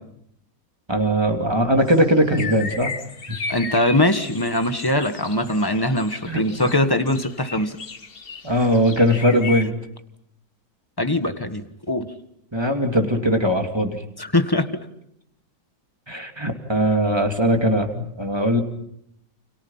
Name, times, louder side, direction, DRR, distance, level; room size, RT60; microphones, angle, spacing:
voice 1, 0.9-2.9 6.2-6.4 8.4-9.7 12.5-14.0 16.1-18.6, equal, 15° right, 4 dB, 2.7 m, -20 dB
sound 1, 1.9-9.7, left 4 dB, 35° left, 1.3 m, -35 dB
voice 2, 3.5-7.8 11.0-12.1 14.2-14.7, left 1 dB, 15° left, 8 dB, 1.4 m, -22 dB
30.0 x 28.0 x 5.7 m, 0.76 s
omnidirectional pair, 2.0 m